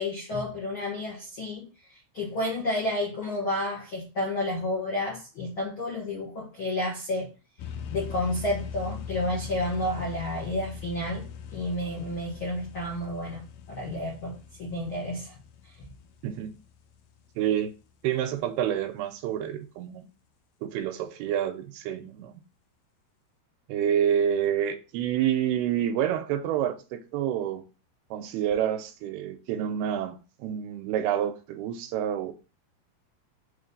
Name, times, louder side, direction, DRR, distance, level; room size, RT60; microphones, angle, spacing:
voice 1, 0.0-7.3 7.9-11.3 11.5-15.4, left 1 dB, 65° left, 1.3 m, -31 dB
sound 1, 7.6-17.1, left 7 dB, 80° left, 2.1 m, -41 dB
voice 2, 17.4-17.7 18.0-20.0 20.6-22.3 23.7-27.6 28.1-32.3, right 10 dB, 85° right, 2.6 m, -28 dB
6.4 x 3.2 x 5.3 m
omnidirectional pair, 4.7 m